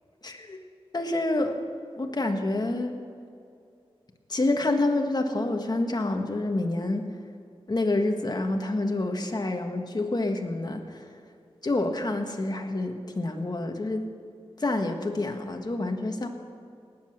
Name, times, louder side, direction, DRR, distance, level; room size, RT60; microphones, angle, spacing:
voice 1, 0.2-0.6 0.9-1.6 2.0-2.9 4.3-7.0 7.7-11.0 11.6-14.1 14.6-16.3, left 2 dB, 40° left, 4 dB, 1.6 m, -28 dB
18.5 x 7.9 x 6.5 m, 2.4 s
wide cardioid pair, 65°, 10 cm